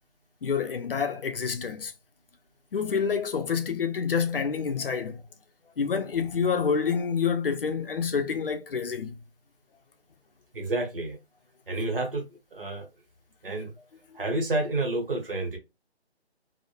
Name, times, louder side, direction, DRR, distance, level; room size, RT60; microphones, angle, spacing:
voice 1, 0.4-1.9 2.7-5.2 5.8-9.2, left 6 dB, 60° left, 0.5 m, -28 dB
voice 2, 10.5-11.2 11.7-12.2 12.5-12.9 13.4-13.7 14.1-15.6, right 2 dB, 55° right, 0.9 m, -29 dB
2.1 x 2.1 x 2.9 m
figure-of-eight pair, 150°, 32 cm